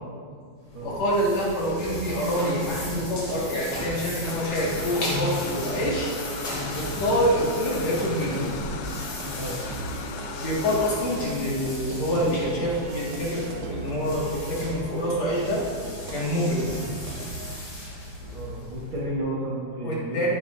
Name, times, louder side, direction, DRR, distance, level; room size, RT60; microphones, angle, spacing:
sound 1, 0.6-19.1, left 1 dB, 35° left, 2.9 m, -36 dB
voice 1, 0.8-6.1 6.8-8.5 10.4-15.6 16.1-16.8 19.8-20.3, equal, 50° left, -5 dB, 2.7 m, -26 dB
sound 2, 1.8-17.6, right 4 dB, 85° right, 2.8 m, -39 dB
sound 3, 4.2-11.0, left 7 dB, 80° left, 2.4 m, -38 dB
voice 2, 9.2-9.6 18.3-20.2, right 1 dB, 50° right, -6 dB, 1.6 m, -32 dB
14.5 x 9.7 x 2.6 m, 2.1 s
omnidirectional pair, 4.3 m